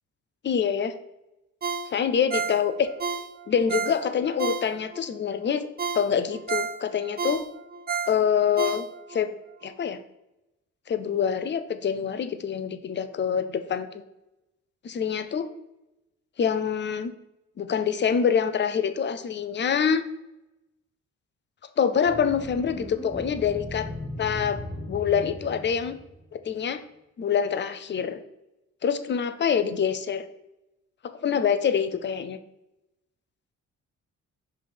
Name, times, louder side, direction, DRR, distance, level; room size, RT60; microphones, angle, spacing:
voice 1, 0.4-0.9 1.9-2.9 3.5-5.7 5.9-7.4 8.1-9.3 9.6-10.0 10.9-14.0 14.8-15.5 16.4-17.1 17.6-20.0 21.8-23.9 24.2-24.6 24.9-26.0 26.3-26.8 27.2-28.2 28.8-30.2 31.2-32.4, left 7 dB, 40° left, 10 dB, 0.6 m, -25 dB
Ringtone, 1.6-5.1 5.5-5.6 5.8-9.2 9.6-9.7, right 5 dB, 30° right, 0.9 m, -31 dB
sound 1, 22.1-26.3, left 1 dB, 15° left, 1.7 m, -37 dB
5.4 x 3.4 x 5.1 m, 0.92 s
cardioid pair, 90°, 30 cm